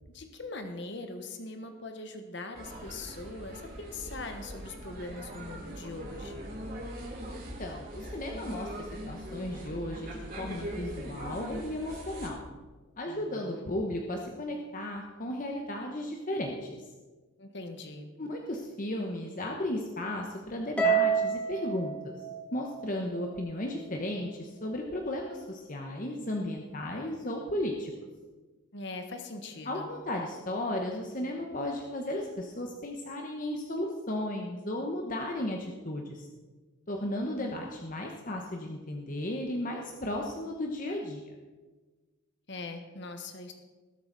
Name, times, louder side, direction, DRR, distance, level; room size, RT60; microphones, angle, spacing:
voice 1, 0.1-6.4 13.1-13.7 17.4-18.1 28.7-29.9 42.5-43.5, left 2 dB, 55° left, 6 dB, 1.3 m, -41 dB
sound 1, 2.5-12.3, equal, 45° right, 3.3 m, -41 dB
voice 2, 7.3-12.4 13.0-16.7 18.2-22.1 22.5-27.9 29.6-36.3 36.9-41.2, left 1 dB, 40° left, 1 dB, 1.1 m, -35 dB
Harp, 20.8-23.2, right 6 dB, 5° left, 1.3 m, -28 dB
19.5 x 8.0 x 4.0 m, 1.3 s
head